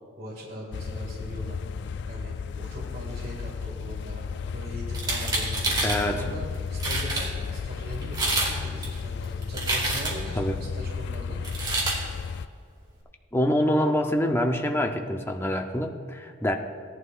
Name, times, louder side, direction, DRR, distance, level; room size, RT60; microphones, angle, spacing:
voice 1, 0.2-4.3 4.5-11.4, right 1 dB, 50° right, -6 dB, 2.0 m, -40 dB
sound 1, 0.7-12.5, left 6 dB, 55° left, 0.3 m, -34 dB
sound 2, 4.9-6.0 6.5-6.6 6.8-7.3 8.0-8.5 8.8-10.3 11.4-12.0, right 2 dB, 20° right, 2.1 m, -27 dB
voice 2, 5.8-6.3 10.3-10.6 13.3-16.6, equal, 10° left, 4 dB, 0.6 m, -25 dB
17.5 x 11.0 x 2.4 m, 2.2 s
head